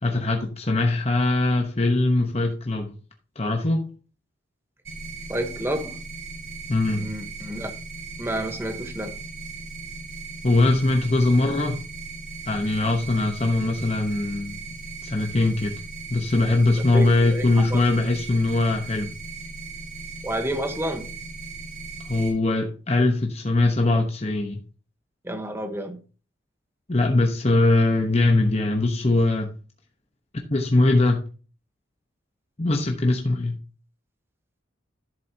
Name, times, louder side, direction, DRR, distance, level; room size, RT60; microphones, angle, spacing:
voice 1, 0.0-2.9 3.4-3.9 6.7-7.1 10.4-11.8 12.5-14.6 15.0-15.7 16.1-19.1 22.0-24.6 26.9-29.5 30.5-31.2 32.6-33.6, left 2 dB, 30° left, 1.0 m, -21 dB
sound 1, 4.8-22.3, right 4 dB, 90° right, 3.8 m, -38 dB
voice 2, 5.3-6.0 7.0-7.7 8.2-9.2 16.9-17.8 20.2-21.1 25.2-26.0, right 1 dB, 10° right, 1.0 m, -30 dB
11.0 x 7.6 x 2.8 m
head